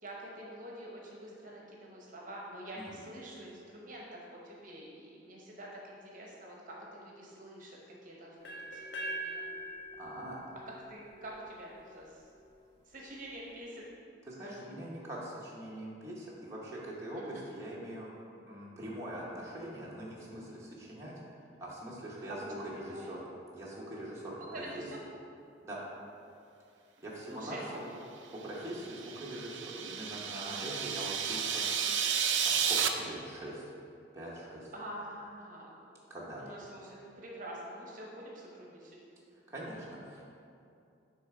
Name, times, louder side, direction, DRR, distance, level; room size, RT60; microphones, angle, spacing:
voice 1, 0.0-4.1 4.3-9.6 10.3-10.4 10.9-12.2 12.9-13.9 14.4-14.6 17.2-17.5 22.5-23.1 24.4-25.0 27.3-27.8 34.7-35.7 36.4-39.0, right 1 dB, 45° right, -3 dB, 0.9 m, -47 dB
sound 1, 8.4-12.3, right 1 dB, 60° left, 0.9 m, -43 dB
voice 2, 10.0-10.4 14.2-18.1 18.5-21.1 21.6-23.2 23.5-24.8 25.6-25.8 27.0-27.9 28.3-31.7 32.4-33.6 34.1-34.7 36.1-36.5 39.5-40.2, right 1 dB, 15° right, -6 dB, 0.8 m, -42 dB
sound 2, 28.7-32.9, right 7 dB, 70° right, 0.4 m, -32 dB
6.8 x 3.3 x 4.7 m, 2.5 s
head